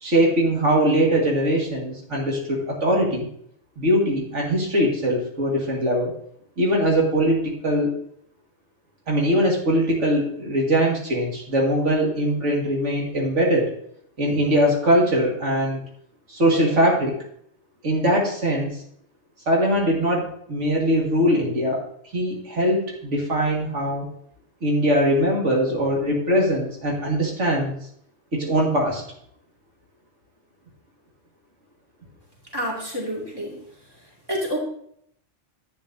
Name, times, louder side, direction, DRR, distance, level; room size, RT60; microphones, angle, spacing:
voice 1, 0.0-3.3 3.8-6.1 6.6-7.9 9.1-13.7 14.2-15.8 16.3-17.2 17.8-18.8 19.5-21.8 22.1-24.1 24.6-27.7 28.3-29.0, equal, 90° right, -2 dB, 2.3 m, -21 dB
voice 2, 32.5-33.6 34.3-34.6, equal, 20° right, -3 dB, 2.4 m, -28 dB
10.5 x 8.6 x 2.7 m, 0.68 s
omnidirectional pair, 1.2 m